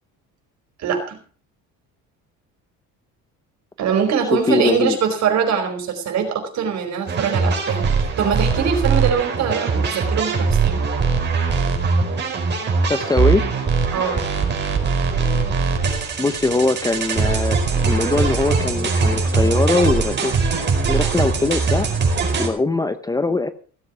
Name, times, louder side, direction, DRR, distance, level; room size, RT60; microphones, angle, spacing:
voice 1, 0.8-1.2 3.8-10.8 13.9-14.2, right 7 dB, 55° right, 5 dB, 4.8 m, -22 dB
voice 2, 4.3-5.0 12.9-13.5 16.2-17.6 17.8-20.3 20.9-21.9 22.4-23.5, left 3 dB, 10° left, 11 dB, 0.7 m, -21 dB
sound 1, 7.1-22.5, right 4 dB, 35° right, 4.4 m, -21 dB
17.0 x 7.8 x 6.1 m, 0.41 s
cardioid pair, 130°, 32 cm